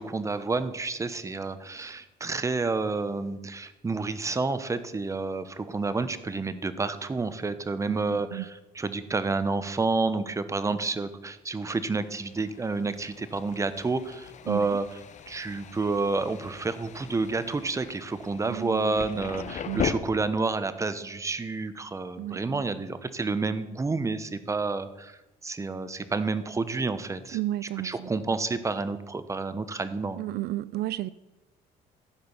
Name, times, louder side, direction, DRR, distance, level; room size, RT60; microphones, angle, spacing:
voice 1, 0.0-15.0 15.3-25.2 25.4-30.2, right 3 dB, 20° right, 0.8 m, -29 dB
voice 2, 7.9-8.4 14.5-14.8 18.5-19.0 19.7-19.8 22.2-22.6 27.3-28.1 30.2-31.1, right 15 dB, 70° right, 0.4 m, -32 dB
Thunder, 11.8-19.9, left 8 dB, 45° left, 0.8 m, -39 dB
14.5 x 5.1 x 7.1 m
cardioid pair, 110°, 17 cm